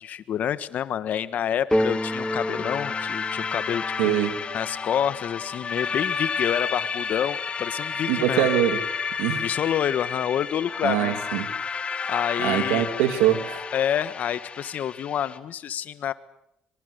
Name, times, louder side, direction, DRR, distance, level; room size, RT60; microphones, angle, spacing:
voice 1, 0.0-4.2 4.5-8.5 9.4-11.2 12.1-12.9 13.7-16.1, left 9 dB, 60° left, 14 dB, 1.5 m, -28 dB
sound 1, 1.7-15.4, left 5 dB, 40° left, 2.0 m, -31 dB
sound 2, 1.7-5.4, equal, 5° left, 1.1 m, -30 dB
voice 2, 4.0-4.3 8.1-8.8 9.2-9.4 10.8-11.5 12.4-13.6, right 11 dB, 90° right, 9 dB, 2.6 m, -23 dB
26.0 x 23.5 x 8.2 m, 0.80 s
supercardioid pair, 75°, 3 cm